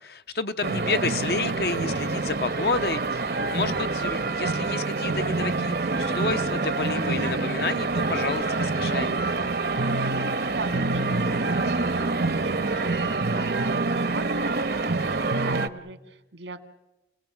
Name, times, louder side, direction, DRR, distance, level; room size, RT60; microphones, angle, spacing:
voice 1, 0.0-9.2, left 3 dB, 65° left, 9 dB, 0.9 m, -30 dB
sound 1, 0.6-15.7, right 3 dB, 60° right, 0.8 m, -26 dB
voice 2, 10.5-16.7, right 3 dB, 90° right, 9 dB, 1.8 m, -40 dB
29.0 x 18.5 x 7.3 m, 1.0 s
head